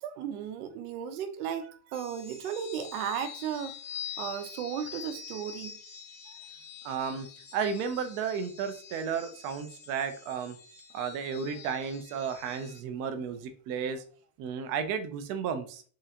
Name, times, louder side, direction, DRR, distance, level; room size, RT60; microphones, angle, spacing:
voice 1, 0.0-3.7 4.2-5.8, right 8 dB, 85° right, 0.8 m, -35 dB
sound 1, 1.9-12.8, left 7 dB, 25° left, 0.7 m, -46 dB
voice 2, 6.8-7.3 7.5-10.6 10.9-14.0 14.4-15.8, right 6 dB, 35° right, 0.4 m, -33 dB
3.7 x 3.2 x 2.8 m
supercardioid pair, 165°, 43 cm